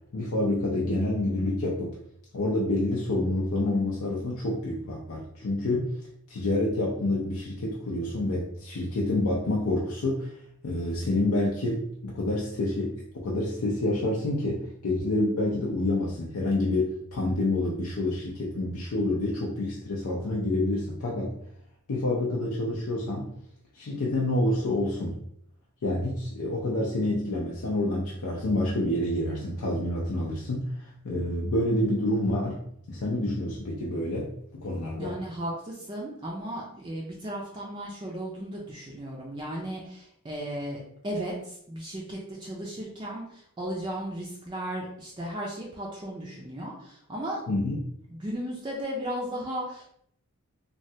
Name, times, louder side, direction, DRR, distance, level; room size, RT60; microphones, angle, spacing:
voice 1, 0.1-2.0 2.3-5.9 6.3-10.3 10.6-21.3 21.9-23.3 23.7-25.2 25.8-32.6 32.9-35.1 47.5-47.8, left 1 dB, 80° left, -3 dB, 0.5 m, -28 dB
voice 2, 35.0-47.6 48.1-49.8, right 1 dB, 20° right, -3 dB, 0.4 m, -35 dB
3.1 x 2.2 x 2.7 m, 0.70 s
head